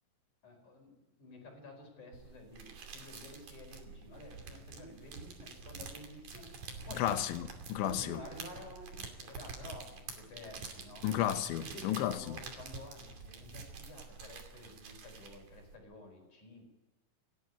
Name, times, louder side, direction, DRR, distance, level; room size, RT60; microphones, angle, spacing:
voice 1, 0.4-6.5 6.9-7.1 7.8-11.1 11.6-16.7, left 2 dB, 40° left, 5.9 m, -51 dB
sound 1, 2.1-15.7, right 5 dB, 45° right, 3.6 m, -48 dB
voice 2, 6.9-8.2 11.0-12.4, left 12 dB, 75° left, 3.4 m, -33 dB
29.5 x 12.0 x 9.5 m
omnidirectional pair, 5.5 m